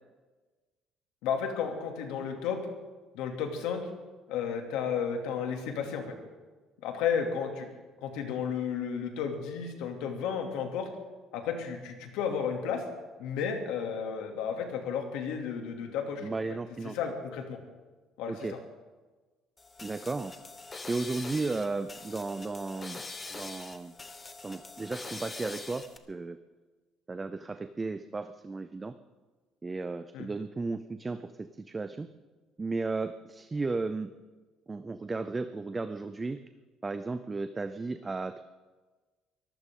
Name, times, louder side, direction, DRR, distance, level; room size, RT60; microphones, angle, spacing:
voice 1, 1.2-2.6 3.1-3.8 4.3-6.1 6.8-7.7 8.0-10.9 11.3-12.8 13.2-16.3 16.9-17.6 18.2-18.6 30.1-30.3, left 7 dB, 85° left, 3 dB, 2.6 m, -33 dB
voice 2, 16.2-17.0 18.3-18.5 19.8-20.4 20.9-23.0 23.3-23.9 24.4-26.4 27.1-28.9 29.6-32.1 32.6-34.1 34.7-36.4 36.8-38.4, right 3 dB, 15° right, 11 dB, 0.4 m, -34 dB
sound 1, 19.6-26.0, left 3 dB, 15° left, 1.0 m, -44 dB
23.0 x 14.5 x 3.8 m, 1.3 s
cardioid pair, 155°, 0 cm